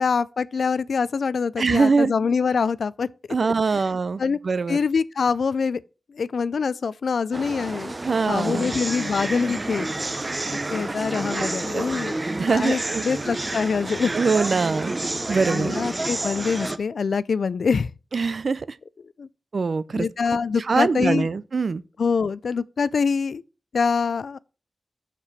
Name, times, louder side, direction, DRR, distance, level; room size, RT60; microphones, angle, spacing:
voice 1, 0.0-3.1 4.2-4.4 4.7-5.8 6.1-7.9 8.3-9.9 10.7-12.2 12.5-14.1 15.5-17.9 19.2-19.3 19.9-21.3 22.0-23.4 23.7-24.4, left 5 dB, 90° left, 0.4 m, -24 dB
voice 2, 1.6-2.1 3.3-4.8 8.0-8.7 11.4-11.8 12.4-13.0 14.1-15.0 15.3-15.8 18.1-18.8 19.5-20.1 20.6-21.8, right 4 dB, 65° right, 0.5 m, -23 dB
sound 1, 7.3-16.8, right 2 dB, 30° right, 0.7 m, -29 dB
7.3 x 6.8 x 5.7 m
wide cardioid pair, 105°, 0 cm